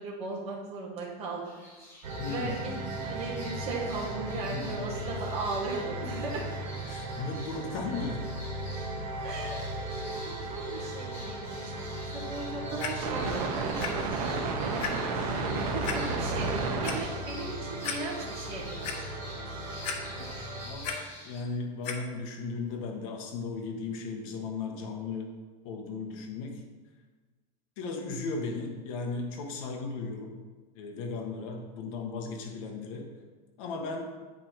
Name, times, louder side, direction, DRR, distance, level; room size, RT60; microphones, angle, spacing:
voice 1, 0.0-1.6 2.2-2.7 3.0-6.4 9.2-9.7 9.9-14.7 15.7-19.2, right 3 dB, 30° right, -5 dB, 1.6 m, -37 dB
sound 1, 1.4-21.4, left 1 dB, 10° left, 1.9 m, -48 dB
sound 2, 2.0-20.7, right 2 dB, 65° right, 1.1 m, -35 dB
voice 2, 2.2-2.8 4.3-5.1 6.9-8.3 20.6-25.3 25.6-26.6 27.8-30.4 30.7-33.1 33.6-34.1, left 4 dB, 55° left, 2 dB, 1.1 m, -36 dB
Clock, 12.8-12.9 13.8-13.9 14.3-14.4 14.8-14.9 15.8-16.0 16.6-16.9 17.5-17.6 17.8-18.0 18.4-19.0 19.8-20.4 20.6-21.0 21.8-22.0 22.7-22.8, left 7 dB, 75° left, 1.1 m, -34 dB
8.7 x 4.6 x 4.5 m, 1.3 s
supercardioid pair, 175°, 21 cm